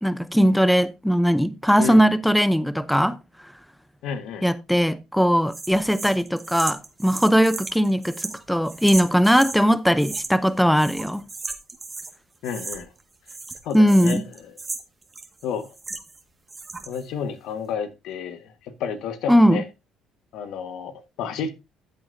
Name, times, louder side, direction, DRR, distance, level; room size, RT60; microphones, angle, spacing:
voice 1, 0.0-3.2 4.4-11.3 13.7-14.2 19.3-19.6, equal, ahead, 0.7 m, -19 dB
voice 2, 4.0-4.5 12.4-12.9 13.6-14.2 15.4-15.7 16.9-19.6 20.3-21.5, left 7 dB, 75° left, 1.5 m, -31 dB
sound 1, 5.5-9.6 10.0-10.5 10.7-12.1 12.4-13.0 13.3-16.2 16.5-17.0, right 3 dB, 25° right, 1.7 m, -35 dB
13.5 x 7.8 x 2.7 m
supercardioid pair, 85°, 0 cm